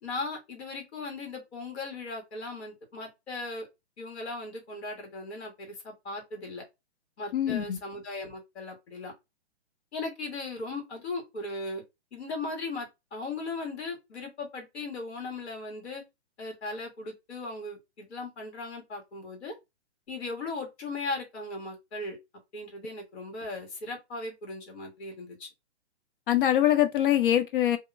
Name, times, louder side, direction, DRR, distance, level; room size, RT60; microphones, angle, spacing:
voice 1, 0.0-3.7 4.0-6.6 7.2-9.1 9.9-11.8 12.1-16.0 16.4-19.5 20.1-22.2 22.5-25.5, left 3 dB, 65° left, 1.5 m, -37 dB
voice 2, 7.3-7.8 26.3-27.8, left 11 dB, 50° left, 0.6 m, -23 dB
2.7 x 2.2 x 2.5 m
hypercardioid pair, 135°, 34 cm